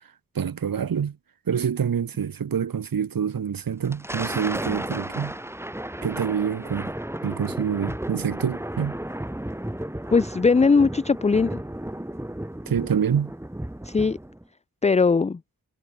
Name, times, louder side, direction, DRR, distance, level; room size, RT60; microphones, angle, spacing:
voice 1, 0.3-1.1 1.5-5.3 6.0-6.9 7.2-8.9 12.7-13.3, right 7 dB, 80° right, 1.5 m, -26 dB
Thunder, 3.7-14.4, right 1 dB, 5° right, 2.5 m, -34 dB
voice 2, 10.1-11.6 13.8-14.2 14.8-15.4, left 4 dB, 20° left, 0.4 m, -19 dB
wide cardioid pair, 125°, 34 cm